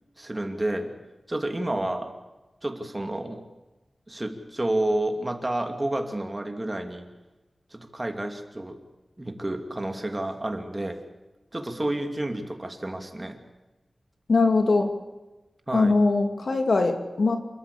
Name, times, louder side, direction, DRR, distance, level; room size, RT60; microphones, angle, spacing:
voice 1, 0.2-0.9 1.3-2.1 2.6-3.4 4.1-7.1 7.7-8.8 9.2-11.0 11.5-13.4 15.7-16.0, right 1 dB, 20° right, 5 dB, 2.6 m, -30 dB
voice 2, 14.3-14.9 15.7-17.4, left 3 dB, 65° left, 5 dB, 2.8 m, -21 dB
28.0 x 13.5 x 8.5 m, 1.1 s
wide cardioid pair, 105°, 0 cm